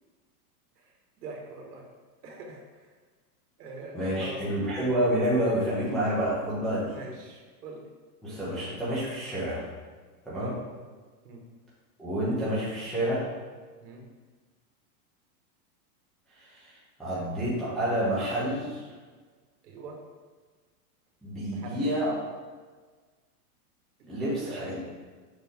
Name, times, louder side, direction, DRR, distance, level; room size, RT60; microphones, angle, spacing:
voice 1, 1.2-1.9 2.2-2.9 3.6-4.9 6.9-7.9 10.4-10.6 11.2-11.4 13.8-14.1 17.1-17.3 19.6-20.0 21.5-22.0 24.0-24.8, right 3 dB, 80° right, 0 dB, 1.8 m, -43 dB
voice 2, 3.9-6.9 8.2-9.6 10.3-10.5 12.0-13.3 16.3-16.7 17.0-18.8 21.2-22.1 24.1-24.8, equal, ahead, -11 dB, 0.7 m, -28 dB
6.7 x 5.1 x 3.7 m, 1.4 s
supercardioid pair, 175°, 47 cm